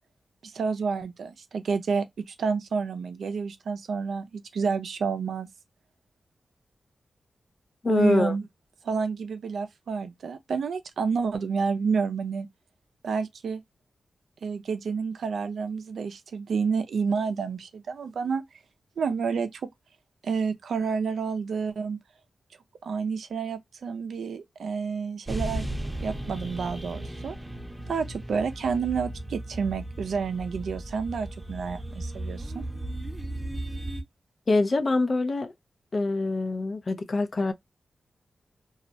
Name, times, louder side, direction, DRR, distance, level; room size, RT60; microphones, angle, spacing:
voice 1, 0.4-5.5 7.8-8.4 8.8-12.5 13.0-13.6 14.4-18.4 19.0-19.6 20.2-22.0 22.8-25.6 26.0-27.4 27.9-32.6, right 5 dB, 85° right, 0.4 m, -29 dB
voice 2, 7.8-8.3 34.5-35.5 35.9-37.5, left 3 dB, 50° left, 0.5 m, -24 dB
sound 1, 25.3-34.0, right 1 dB, 10° right, 0.7 m, -36 dB
2.3 x 2.1 x 2.5 m
cardioid pair, 60°, 0 cm